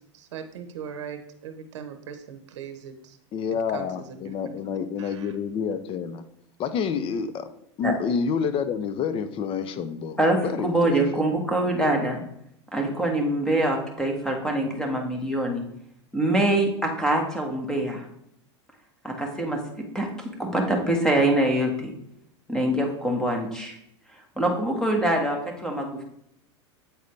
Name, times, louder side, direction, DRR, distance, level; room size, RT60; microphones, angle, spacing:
voice 1, 0.1-3.2 3.7-4.5 5.0-5.3, right 7 dB, 75° right, 8 dB, 0.7 m, -40 dB
voice 2, 3.3-6.2 6.6-7.5 7.8-11.2, left 6 dB, 35° left, 11 dB, 0.6 m, -28 dB
voice 3, 10.2-12.2 12.7-15.6 16.1-18.0 19.0-19.6 19.9-20.1 20.4-21.9 22.5-23.7 24.4-26.0, right 1 dB, 5° left, 2 dB, 1.3 m, -24 dB
8.1 x 4.0 x 3.2 m, 0.74 s
hypercardioid pair, 100°, 15 cm